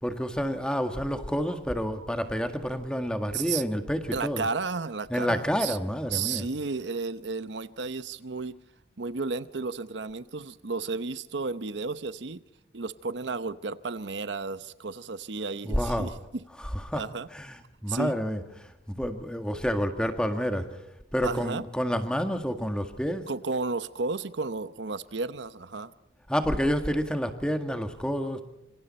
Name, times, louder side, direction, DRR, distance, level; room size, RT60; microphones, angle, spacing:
voice 1, 0.0-4.5 5.1-6.5 15.6-16.1 16.9-17.0 17.3-18.4 18.9-20.8 21.1-23.3 26.3-28.4, equal, 5° left, 7 dB, 1.8 m, -29 dB
voice 2, 4.1-5.8 6.1-8.6 9.0-12.4 12.7-16.4 16.9-17.3 17.9-18.1 21.2-21.6 23.3-25.9, right 4 dB, 75° right, 14 dB, 0.8 m, -33 dB
26.5 x 26.0 x 4.3 m, 0.89 s
head